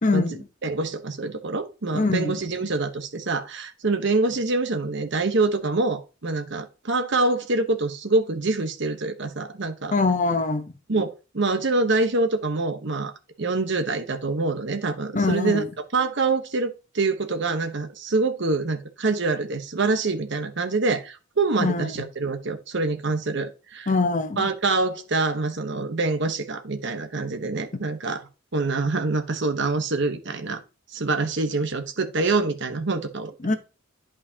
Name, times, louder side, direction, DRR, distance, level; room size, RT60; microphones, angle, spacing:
voice 1, 0.0-0.4 1.9-2.4 9.9-10.7 15.1-15.7 21.6-21.9 23.9-24.5 33.4-33.6, left 3 dB, 40° left, 0.9 m, -23 dB
voice 2, 0.6-10.0 10.9-13.1 13.4-15.6 15.9-23.9 24.4-28.2 28.5-30.6 30.9-33.6, right 3 dB, 65° right, 1.0 m, -25 dB
11.0 x 4.9 x 2.8 m
head